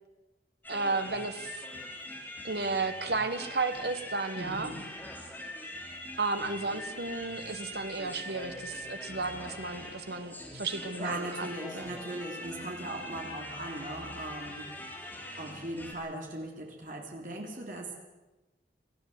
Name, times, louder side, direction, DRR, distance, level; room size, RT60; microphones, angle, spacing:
sound 1, 0.6-15.9, left 1 dB, 10° left, 3.2 m, -43 dB
voice 1, 0.7-1.6 2.4-4.7 6.2-11.5 11.7-11.9, right 3 dB, 70° right, 8 dB, 1.7 m, -33 dB
voice 2, 4.4-4.8 11.0-17.9, right 1 dB, 50° right, 0 dB, 3.3 m, -39 dB
19.5 x 14.0 x 9.5 m, 1.1 s
head